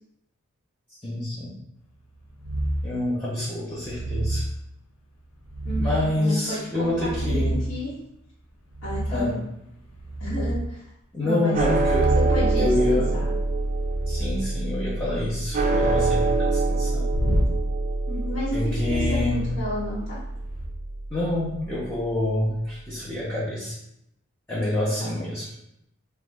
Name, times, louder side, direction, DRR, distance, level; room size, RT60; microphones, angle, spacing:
voice 1, 1.0-1.6 2.8-4.5 5.8-7.7 9.1-9.4 11.1-12.1 12.6-13.1 14.1-17.1 18.5-19.5 21.1-23.8 24.5-25.5, left 1 dB, 10° left, -8 dB, 0.6 m, -27 dB
sound 1, 2.4-3.0 3.8-4.5 5.4-6.1 6.8-7.8 8.7-9.3 9.8-10.7 11.6-14.4 15.7-16.2 17.1-17.6 18.7-20.0 20.4-20.7, right 1 dB, 85° left, 0.6 m, -28 dB
voice 2, 6.2-7.9 8.8-9.4 10.2-10.9 11.2-11.5 12.3-13.3 18.1-18.6 18.9-20.2 25.0-25.1, left 1 dB, 65° left, -11 dB, 1.1 m, -32 dB
sound 2, 11.5-22.0, right 3 dB, 35° right, 0.3 m, -26 dB
3.0 x 2.3 x 3.3 m, 0.80 s
head